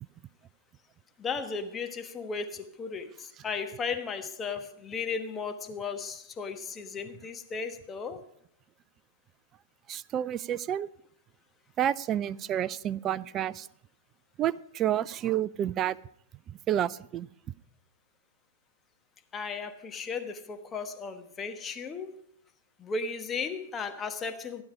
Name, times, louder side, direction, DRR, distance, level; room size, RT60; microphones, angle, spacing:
voice 1, 1.2-8.2 19.3-22.2 22.8-24.6, left 5 dB, 20° left, 1.1 m, -35 dB
voice 2, 9.9-10.9 11.8-13.7 14.4-16.0 16.5-17.3, right 11 dB, 30° right, 0.4 m, -29 dB
16.0 x 10.0 x 4.9 m
figure-of-eight pair, 105°, 0 cm